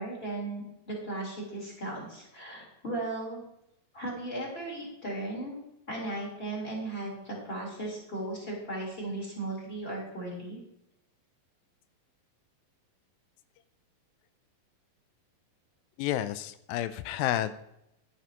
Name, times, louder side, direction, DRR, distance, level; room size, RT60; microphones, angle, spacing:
voice 1, 0.0-3.4 3.9-5.6 5.9-10.6, right 2 dB, 15° left, -4 dB, 3.9 m, -36 dB
voice 2, 16.0-17.6, left 12 dB, 90° left, 13 dB, 2.3 m, -30 dB
11.0 x 10.0 x 3.0 m, 0.83 s
omnidirectional pair, 4.1 m